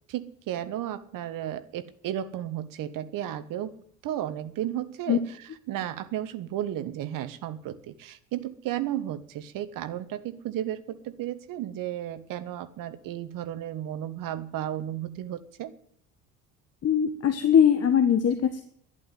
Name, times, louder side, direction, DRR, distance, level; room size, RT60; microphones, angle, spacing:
voice 1, 0.1-3.8 4.0-15.7, right 12 dB, 50° right, 12 dB, 1.3 m, -34 dB
voice 2, 16.8-18.6, left 8 dB, 35° left, 9 dB, 1.4 m, -21 dB
11.5 x 10.5 x 9.3 m, 0.65 s
figure-of-eight pair, 60°, 42 cm